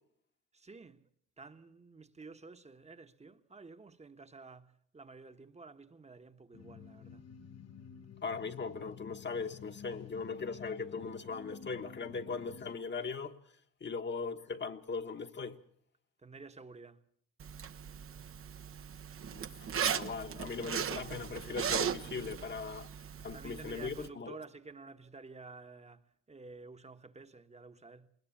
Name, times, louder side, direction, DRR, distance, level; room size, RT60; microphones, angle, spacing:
voice 1, 0.5-1.1 1.4-7.2 16.2-17.0 23.3-28.1, right 3 dB, 20° right, 1.3 m, -51 dB
sound 1, 6.5-12.8, left 7 dB, 55° left, 1.2 m, -51 dB
voice 2, 8.2-13.3 13.8-15.6 19.3-22.9 23.2-24.4, left 4 dB, 35° left, 1.4 m, -39 dB
Zipper (clothing), 17.4-24.1, right 8 dB, 45° right, 1.0 m, -38 dB
20.5 x 20.0 x 7.3 m
cardioid pair, 90°, 30 cm